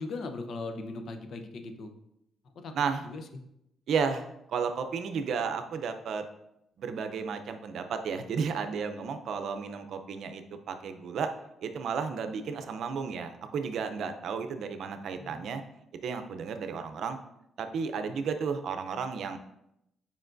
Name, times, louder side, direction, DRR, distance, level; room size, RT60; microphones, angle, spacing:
voice 1, 0.0-1.9 2.6-2.7 3.0-3.2 15.2-15.4, left 3 dB, 60° left, 6 dB, 0.8 m, -38 dB
voice 2, 3.9-6.2 6.8-11.3 11.6-15.6 16.0-17.2 17.6-19.4, right 6 dB, 70° right, 8 dB, 0.6 m, -33 dB
7.5 x 5.1 x 2.6 m, 0.81 s
cardioid pair, 90°, 0 cm